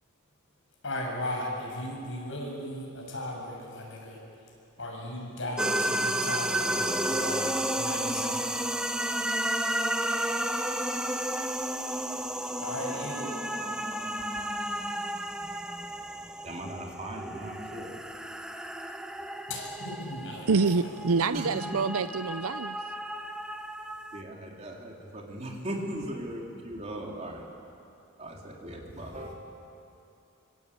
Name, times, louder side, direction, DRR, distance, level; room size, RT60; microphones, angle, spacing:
voice 1, 0.8-4.2 4.8-7.5 7.7-8.7 12.6-13.2 19.5-20.9, left 1 dB, 60° left, 7.4 m, -36 dB
sound 1, 5.6-24.2, right 1 dB, 5° right, 0.8 m, -32 dB
voice 2, 16.4-17.9 21.3-22.0 24.1-27.4 28.2-29.3, right 1 dB, 30° right, 3.7 m, -38 dB
voice 3, 20.5-22.8, right 4 dB, 80° right, 0.6 m, -26 dB
25.5 x 24.5 x 8.7 m
head